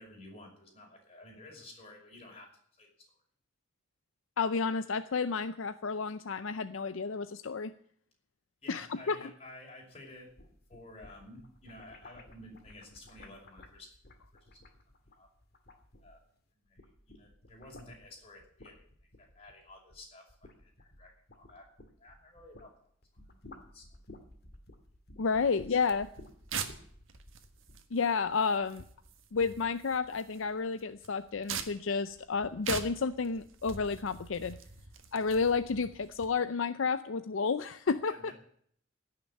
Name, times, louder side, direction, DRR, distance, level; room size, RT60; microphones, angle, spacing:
voice 1, 0.0-2.5 2.8-3.2 8.6-10.3 10.7-14.0 15.1-15.3 16.0-16.2 16.6-18.8 19.2-21.6 22.0-22.7 23.7-23.9 25.7-25.8 38.1-38.3, left 1 dB, 30° left, 0 dB, 5.6 m, -52 dB
voice 2, 4.4-7.7 8.7-9.3 25.2-26.1 27.9-28.8 29.3-34.6 35.1-38.2, left 5 dB, 65° left, 11 dB, 0.5 m, -31 dB
sound 1, 10.2-16.4 16.7-22.7 23.0-27.8, left 1 dB, 50° left, 2.2 m, -54 dB
sound 2, 25.8-36.3, right 6 dB, 70° right, 1.6 m, -44 dB
16.5 x 6.8 x 9.9 m, 0.62 s
head